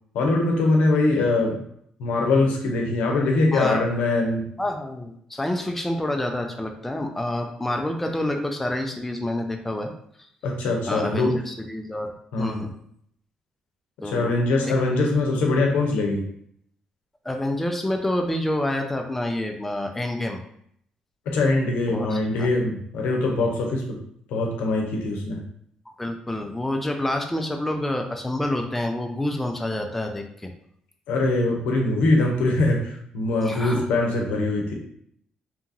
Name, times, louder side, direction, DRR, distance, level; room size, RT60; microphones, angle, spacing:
voice 1, 0.1-1.6 2.0-4.5 10.4-11.4 12.3-12.6 14.0-16.2 21.3-24.0 24.3-25.4 31.1-34.7, left 2 dB, 85° left, 0 dB, 0.6 m, -22 dB
voice 2, 3.5-3.9 4.6-9.9 10.9-12.7 14.0-14.7 17.2-20.4 21.9-22.5 26.0-30.5 33.4-33.9, left 1 dB, 10° left, 4 dB, 0.3 m, -28 dB
2.9 x 2.4 x 2.6 m, 0.68 s
cardioid pair, 90°, 3 cm